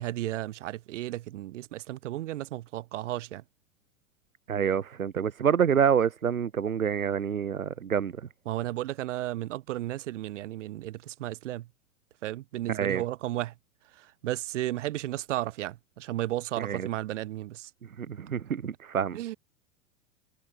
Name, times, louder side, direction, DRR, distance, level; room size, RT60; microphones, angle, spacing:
voice 1, 0.0-3.4 8.5-11.7 12.2-13.5 13.9-17.7 19.1-19.4, right 15 dB, 60° right, 4.0 m, -34 dB
voice 2, 4.5-8.1 12.7-13.0 16.6-16.9 18.0-19.2, right 7 dB, 90° right, 1.2 m, -27 dB
hypercardioid pair, 105°, 40 cm